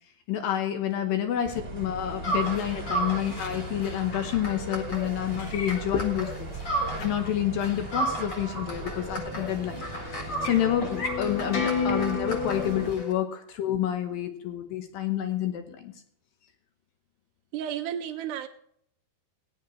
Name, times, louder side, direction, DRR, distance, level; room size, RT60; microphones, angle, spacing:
voice 1, 0.3-9.8 10.2-15.9, left 11 dB, 80° left, 7 dB, 2.0 m, -29 dB
sound 1, 1.4-12.9, right 3 dB, 25° right, 1.6 m, -39 dB
sound 2, 2.2-7.3 7.6-13.1, right 1 dB, 60° left, 1.1 m, -34 dB
sound 3, 9.3-12.9, left 5 dB, 45° left, 2.6 m, -32 dB
voice 2, 17.5-18.5, right 10 dB, 85° right, 9 dB, 2.4 m, -32 dB
17.5 x 10.0 x 3.1 m, 0.69 s
omnidirectional pair, 5.4 m